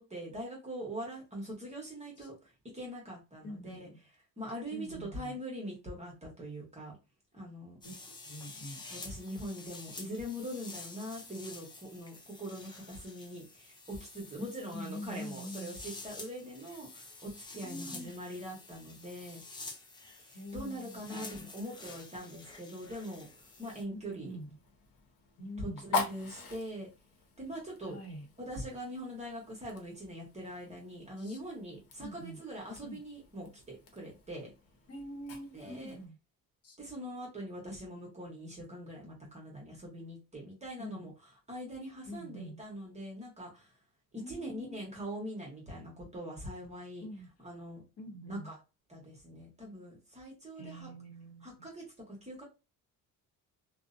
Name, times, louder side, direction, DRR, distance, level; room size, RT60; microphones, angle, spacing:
voice 1, 0.0-3.9 4.4-7.0 7.3-7.8 8.9-19.4 20.2-23.3 23.6-24.3 25.6-26.9 27.4-28.0 28.4-34.5 35.5-35.9 36.8-41.1 41.5-43.7 44.1-47.0 47.4-47.8 48.3-48.6 48.9-50.9 51.4-52.4, equal, 20° right, 0.9 m, -42 dB
voice 2, 3.4-4.0 4.7-5.4 7.8-8.8 14.7-15.8 17.6-18.1 20.3-21.5 23.9-24.6 25.4-25.8 27.8-28.3 31.2-31.4 32.0-32.4 32.8-33.0 34.9-36.2 36.6-36.8 40.8-41.1 42.1-42.6 44.2-44.8 47.0-47.3 48.0-48.5 50.6-51.7, equal, 45° left, 0.9 m, -45 dB
sound 1, 7.8-23.8, left 3 dB, 15° left, 0.3 m, -49 dB
Fire, 22.8-36.1, left 4 dB, 75° left, 0.9 m, -44 dB
2.5 x 2.0 x 2.5 m
cardioid pair, 125°, 34 cm